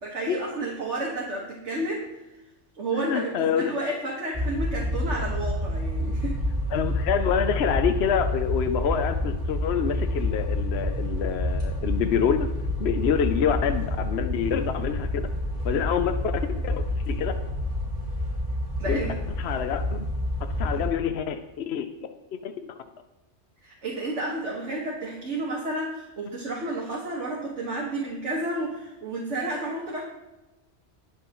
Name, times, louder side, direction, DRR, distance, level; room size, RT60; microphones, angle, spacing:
voice 1, 0.0-2.1 2.8-6.4 18.8-19.2 23.6-30.0, right 2 dB, 85° right, -4 dB, 2.1 m, -31 dB
voice 2, 2.9-3.7 6.7-12.5 12.8-15.2 15.6-17.4 18.9-19.0 19.4-20.1 20.6-21.9 22.4-22.7, left 7 dB, 65° left, 8 dB, 0.9 m, -27 dB
sound 1, 4.3-20.9, left 1 dB, 35° right, 4.4 m, -28 dB
20.5 x 7.0 x 3.1 m, 1.1 s
omnidirectional pair, 1.2 m